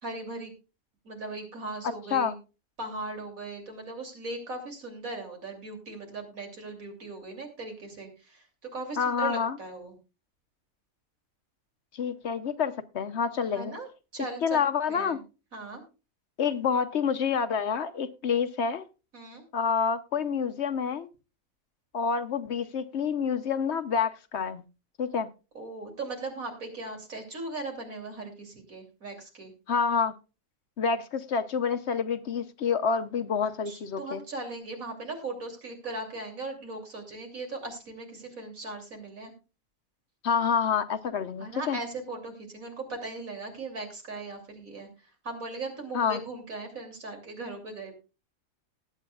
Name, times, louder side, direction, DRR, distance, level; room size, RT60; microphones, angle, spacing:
voice 1, 0.0-0.5 1.0-2.3 2.8-8.5 8.7-9.9 13.4-14.6 14.9-15.2 15.5-15.8 19.1-19.4 25.5-29.5 33.4-39.3 41.4-47.9, right 2 dB, 80° right, 3.4 m, -38 dB
voice 2, 9.0-9.6 11.9-13.7 14.4-15.2 16.4-18.8 19.5-21.1 21.9-24.6 25.0-25.3 29.7-30.1 30.8-34.2 40.2-41.8 45.9-46.2, left 6 dB, 60° left, 1.0 m, -28 dB
20.0 x 8.3 x 2.3 m
omnidirectional pair, 1.4 m